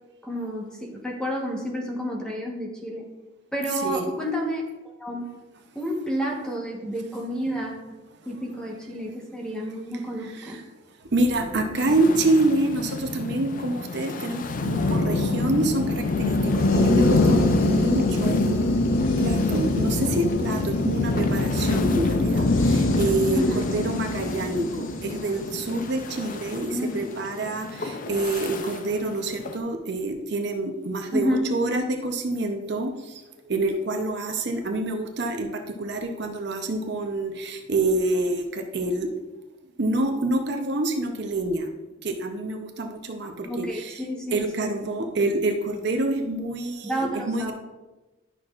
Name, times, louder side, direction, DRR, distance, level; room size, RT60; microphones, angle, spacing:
voice 1, 0.2-3.0 3.5-5.3 5.7-7.8 8.3-10.6 23.3-23.7 26.7-27.0 31.1-31.5 43.5-44.7 46.8-47.5, equal, 5° left, -2 dB, 1.1 m, -30 dB
voice 2, 3.7-4.0 10.3-10.6 11.1-39.1 39.8-41.7 42.0-44.0 44.3-47.5, right 2 dB, 60° right, 4 dB, 0.7 m, -27 dB
sound 1, 11.2-26.7, left 2 dB, 85° left, 0.6 m, -24 dB
sound 2, 11.7-29.6, left 3 dB, 45° left, 0.5 m, -39 dB
11.0 x 6.0 x 2.4 m, 1.1 s
head